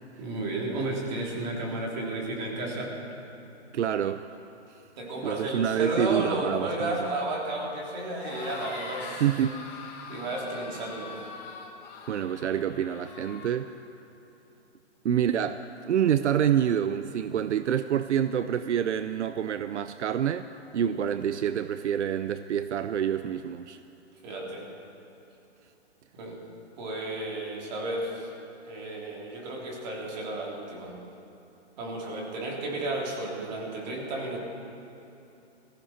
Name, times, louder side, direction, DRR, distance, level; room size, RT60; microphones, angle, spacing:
voice 1, 0.2-3.0 5.0-9.2 10.1-11.2 24.2-24.7 26.2-26.4 26.8-28.3 28.6-30.9 31.8-34.4, right 2 dB, 40° right, -1 dB, 3.2 m, -33 dB
voice 2, 3.7-4.2 5.2-7.0 9.2-9.6 12.1-13.7 15.0-20.5 20.7-23.8, right 9 dB, 85° right, 12 dB, 0.6 m, -27 dB
sound 1, 8.1-13.6, left 4 dB, 35° left, 2.4 m, -42 dB
20.5 x 15.0 x 4.3 m, 2.9 s
hypercardioid pair, 155°, 34 cm